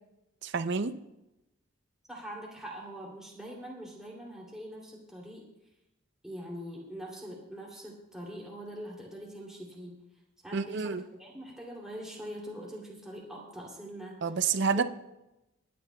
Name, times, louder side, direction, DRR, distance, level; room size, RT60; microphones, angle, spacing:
voice 1, 0.4-0.9 10.5-11.0 14.2-14.8, right 5 dB, 60° right, 11 dB, 0.6 m, -28 dB
voice 2, 2.1-5.4 6.2-10.0 10.4-14.2 14.7-14.8, equal, 5° right, -4 dB, 2.8 m, -43 dB
26.0 x 10.5 x 2.3 m, 0.95 s
head